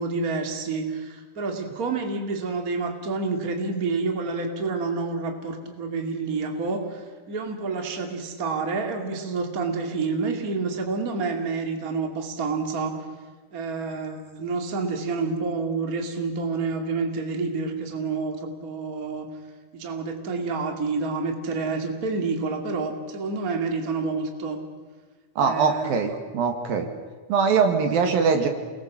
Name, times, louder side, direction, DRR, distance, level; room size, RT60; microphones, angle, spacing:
voice 1, 0.0-13.0 13.5-19.3 19.7-24.6 25.4-25.9, right 4 dB, 25° right, 4 dB, 2.5 m, -28 dB
voice 2, 25.4-26.9 27.3-28.5, right 5 dB, 70° right, 6 dB, 3.6 m, -22 dB
28.5 x 21.0 x 7.5 m, 1.4 s
omnidirectional pair, 4.3 m